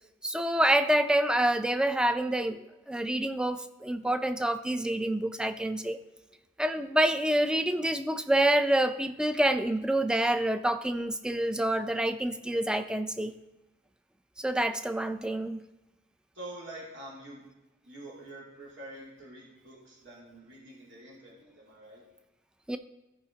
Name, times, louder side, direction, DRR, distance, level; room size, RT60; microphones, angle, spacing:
voice 1, 0.2-6.0 6.6-13.3 14.4-15.6 22.7-22.8, right 1 dB, 5° right, 10 dB, 0.3 m, -27 dB
voice 2, 16.3-17.4 17.8-22.0, right 1 dB, 90° right, -4 dB, 2.6 m, -46 dB
14.5 x 5.0 x 3.8 m, 1.0 s
head